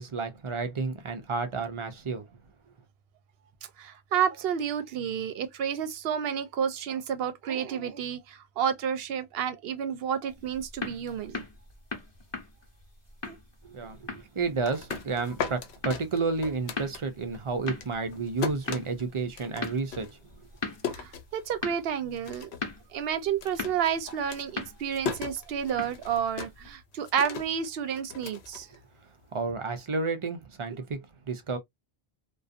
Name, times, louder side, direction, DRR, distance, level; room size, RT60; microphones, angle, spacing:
voice 1, 0.0-2.3 13.6-20.2 29.3-31.0 31.3-31.6, right 4 dB, 45° right, 0.4 m, -31 dB
voice 2, 3.8-11.5 13.2-13.4 20.9-22.5 22.9-28.7, right 8 dB, 70° right, 0.8 m, -30 dB
sound 1, 10.3-26.8, left 4 dB, 25° left, 0.9 m, -41 dB
sound 2, 14.4-17.4 17.7-21.8 22.1-22.7 23.0-29.2, left 6 dB, 75° left, 0.9 m, -38 dB
2.5 x 2.3 x 2.4 m
omnidirectional pair, 1.1 m